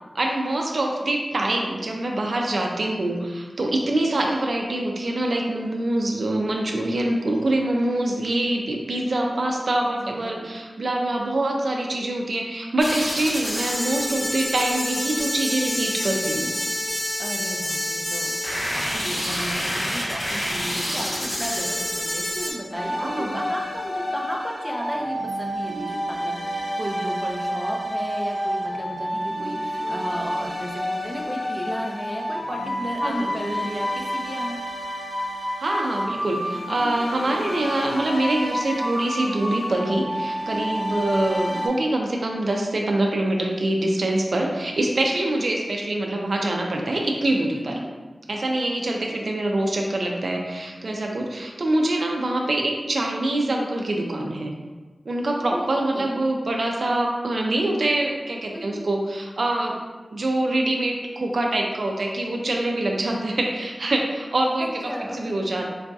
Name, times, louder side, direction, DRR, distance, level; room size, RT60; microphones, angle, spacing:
voice 1, 0.1-16.5 23.0-23.3 33.0-33.3 35.6-47.8 48.3-54.5 55.1-59.8 60.1-65.7, right 1 dB, 70° right, 0 dB, 0.4 m, -25 dB
voice 2, 9.9-10.5 17.2-34.6 47.5-47.9 55.4-56.2 58.5-58.9 64.6-65.5, equal, 10° right, -1 dB, 0.5 m, -34 dB
sound 1, 12.8-22.5, equal, 45° left, 1.4 m, -27 dB
sound 2, 22.7-41.7, equal, 75° left, 0.8 m, -29 dB
3.8 x 2.6 x 2.2 m, 1.3 s
wide cardioid pair, 65°, 0 cm